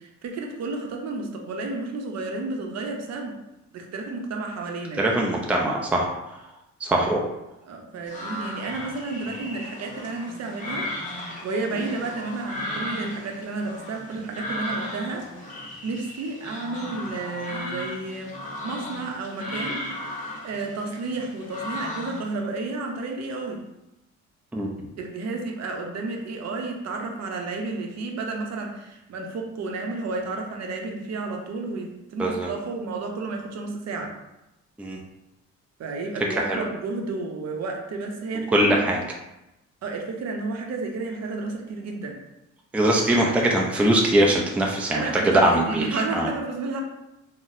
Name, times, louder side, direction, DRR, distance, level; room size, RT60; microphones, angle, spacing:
voice 1, 0.0-3.4 3.7-5.1 7.0-7.2 7.7-10.9 11.4-18.4 18.6-23.6 25.0-34.1 35.8-38.9 39.8-42.2 44.9-46.8, right 3 dB, 60° right, 2 dB, 0.7 m, -32 dB
voice 2, 5.0-6.1 6.8-7.2 24.5-24.7 32.2-32.5 34.8-35.0 36.4-36.6 38.5-39.0 42.7-46.3, right 1 dB, 5° right, -1 dB, 0.4 m, -22 dB
sound 1, 8.1-22.4, left 1 dB, 25° left, 0.9 m, -35 dB
3.9 x 2.1 x 2.5 m, 0.92 s
cardioid pair, 90°, 30 cm